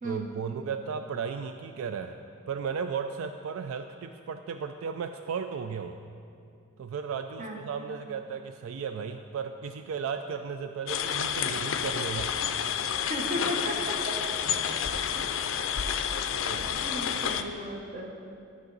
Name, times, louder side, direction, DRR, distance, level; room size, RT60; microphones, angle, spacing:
voice 1, 0.0-2.2 2.5-6.0 6.8-12.3 16.3-16.9, right 6 dB, 75° right, 8 dB, 0.3 m, -35 dB
sound 1, 10.9-17.4, left 8 dB, 65° left, 0.4 m, -30 dB
voice 2, 13.1-13.9 15.2-15.3 16.8-18.1, equal, 40° right, 0 dB, 1.0 m, -35 dB
13.5 x 4.9 x 3.9 m, 2.5 s
head